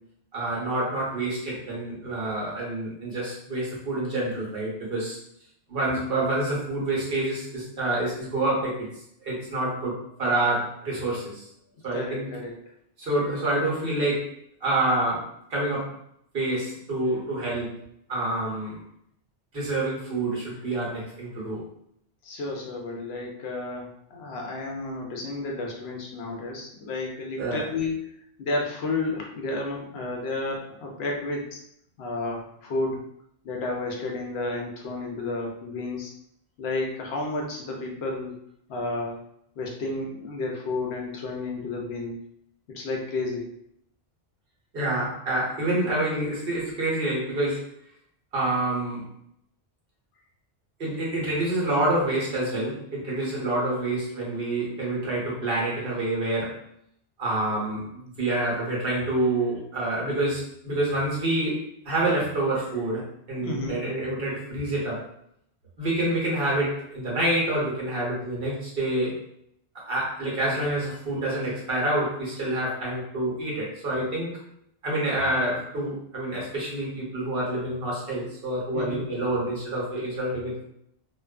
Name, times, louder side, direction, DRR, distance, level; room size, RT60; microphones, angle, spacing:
voice 1, 0.3-5.2 5.7-8.9 9.2-11.5 11.8-12.3 13.0-14.3 14.6-15.9 16.3-17.8 18.1-18.8 19.5-21.6 27.4-27.6 44.7-47.7 48.3-49.1 50.8-56.6 57.2-65.0 65.8-69.1 69.7-74.4 74.8-80.6, right 1 dB, 60° right, -5 dB, 1.1 m, -27 dB
voice 2, 11.9-12.5 22.2-28.0 28.4-31.6 32.0-33.0 33.4-36.1 36.6-38.4 38.7-39.2 39.6-42.1 42.7-43.5 63.3-63.8 78.7-79.0, left 2 dB, 75° left, 0 dB, 0.8 m, -31 dB
2.4 x 2.3 x 2.3 m, 0.73 s
omnidirectional pair, 1.1 m